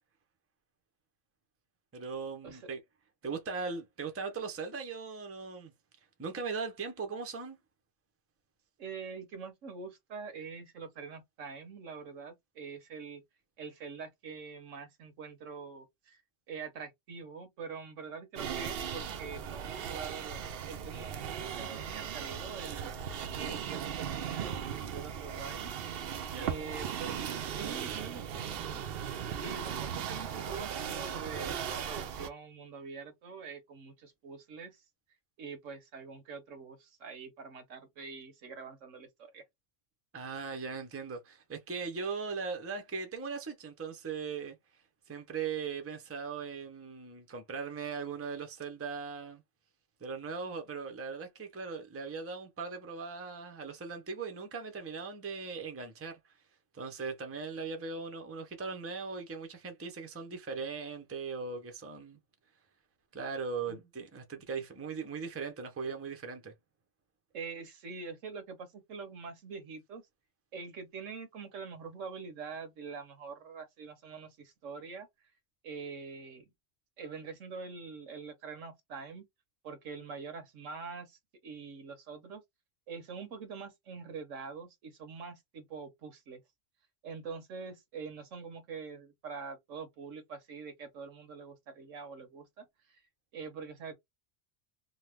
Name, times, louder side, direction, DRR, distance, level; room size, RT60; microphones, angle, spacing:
voice 1, 1.9-2.8 3.2-5.7 6.2-7.6 26.3-26.6 40.1-44.6 45.1-49.4 50.0-56.2 56.7-62.2 63.1-66.5, right 5 dB, 20° right, 0.4 m, -39 dB
voice 2, 8.8-13.2 13.6-16.2 16.5-22.9 23.3-25.7 26.4-28.8 29.4-34.8 35.4-39.4 63.7-63.8 67.3-70.0 70.5-75.1 75.6-76.5 77.0-79.2 79.6-82.4 82.9-86.4 87.0-93.0 93.3-93.9, right 5 dB, 85° right, 1.2 m, -45 dB
sound 1, 18.4-32.3, right 8 dB, 65° right, 0.6 m, -38 dB
2.9 x 2.1 x 3.3 m
omnidirectional pair, 1.3 m